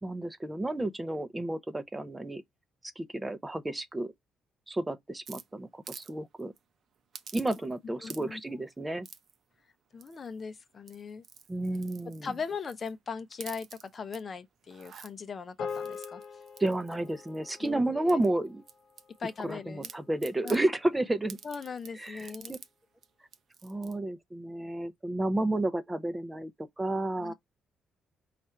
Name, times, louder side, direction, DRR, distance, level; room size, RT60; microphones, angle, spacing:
voice 1, 0.0-2.4 3.0-4.1 4.7-6.5 7.3-9.1 11.5-12.3 16.6-18.6 19.4-21.4 21.9-22.6 23.6-27.3, right 1 dB, 15° right, 0.5 m, -31 dB
sound 1, 5.3-6.1 6.4-6.6 7.1-7.8 8.0-8.5 9.0-9.4 10.0-10.4 10.8-12.9 13.3-14.2 14.6-15.1 15.7-17.7 18.1-19.5 19.8-20.6 21.3-22.7 23.0-23.1 23.3-23.9, right 7 dB, 60° right, 0.6 m, -49 dB
voice 2, 7.8-8.6 9.9-11.2 12.2-16.2 17.6-18.3 19.2-19.9 20.4-20.6 21.4-22.6 27.2-27.3, left 5 dB, 45° left, 0.6 m, -39 dB
sound 2, 15.6-20.1, left 6 dB, 80° left, 1.1 m, -43 dB
4.3 x 2.5 x 4.2 m
cardioid pair, 90°, 0 cm